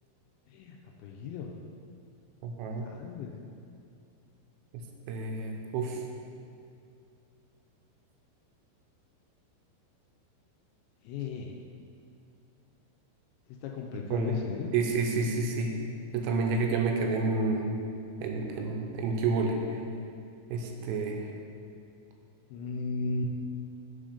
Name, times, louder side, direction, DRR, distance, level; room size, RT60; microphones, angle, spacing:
voice 1, 1.0-1.5 2.8-3.3 11.0-11.6 13.6-14.7 22.5-23.3, left 4 dB, 80° left, 1 dB, 2.7 m, -36 dB
voice 2, 2.4-2.9 5.1-6.0 14.1-14.4 14.7-15.7 16.1-17.8 18.2-19.6 20.5-21.2, right 4 dB, 85° right, 2 dB, 2.9 m, -29 dB
8.4 x 3.8 x 5.0 m, 2.5 s
omnidirectional pair, 5.3 m